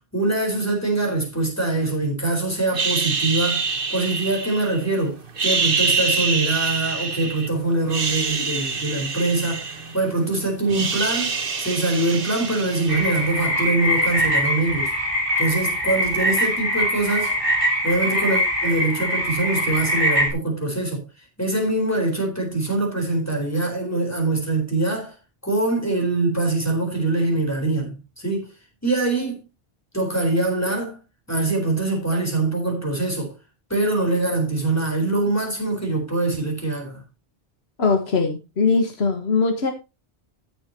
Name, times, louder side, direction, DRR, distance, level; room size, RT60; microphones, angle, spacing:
voice 1, 0.1-3.6 3.9-14.9 15.4-17.4 17.8-21.0 21.4-25.1 25.4-28.5 28.8-29.4 29.9-31.0 31.3-33.3 33.7-37.0, right 2 dB, 15° left, 4.3 m, -23 dB
sound 1, 2.7-4.9 5.3-7.5 7.8-10.2 10.5-13.4, right 4 dB, 55° right, 1.4 m, -26 dB
sound 2, 12.9-20.3, equal, 30° right, 3.8 m, -23 dB
voice 2, 37.8-39.7, left 4 dB, 70° left, 1.7 m, -21 dB
15.0 x 7.3 x 3.0 m
omnidirectional pair, 1.1 m